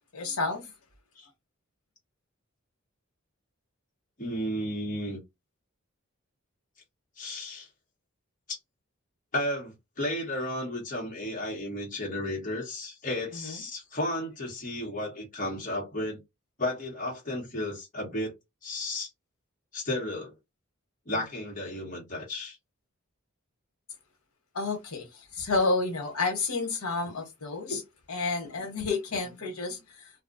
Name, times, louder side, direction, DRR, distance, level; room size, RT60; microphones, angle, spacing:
voice 1, 0.1-0.7 13.3-13.6 24.5-27.8 28.1-30.1, left 3 dB, 90° left, 1.0 m, -30 dB
voice 2, 4.2-5.2 7.2-7.7 8.5-8.6 9.3-16.2 16.6-18.3 18.6-19.1 19.7-20.3 21.1-22.6 27.7-27.8, left 1 dB, 35° left, 1.1 m, -33 dB
2.4 x 2.2 x 2.5 m
head